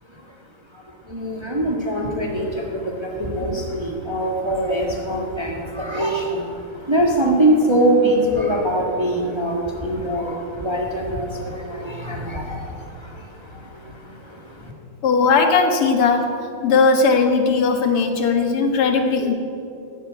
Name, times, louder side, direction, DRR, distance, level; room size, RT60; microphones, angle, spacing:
voice 1, 0.0-14.7, right 1 dB, 15° right, 0 dB, 1.3 m, -23 dB
voice 2, 15.0-16.3 16.6-19.3, left 4 dB, 85° left, 5 dB, 2.3 m, -18 dB
14.0 x 9.2 x 9.6 m, 2.7 s
omnidirectional pair, 2.4 m